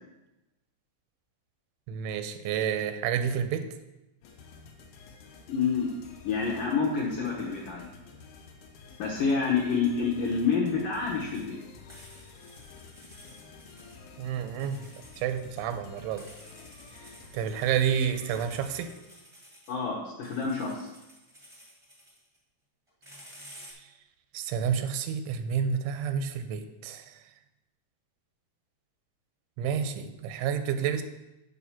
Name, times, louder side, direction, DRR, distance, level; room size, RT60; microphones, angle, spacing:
voice 1, 1.9-3.7 14.2-14.8 15.2-16.2 17.3-18.9 24.3-27.1 29.6-31.0, right 8 dB, 85° right, 9 dB, 3.0 m, -29 dB
sound 1, 4.2-19.3, left 4 dB, 85° left, 1.8 m, -51 dB
voice 2, 5.5-5.9 6.2-7.9 9.0-11.6 19.7-20.9, left 5 dB, 70° left, -3 dB, 2.0 m, -28 dB
sound 2, 11.2-11.4 11.9-14.1 14.6-15.5 16.2-17.8 18.2-19.7 20.2-22.4 22.9-23.7, equal, 55° right, 0.3 m, -52 dB
8.2 x 4.8 x 7.1 m, 0.97 s
omnidirectional pair, 5.3 m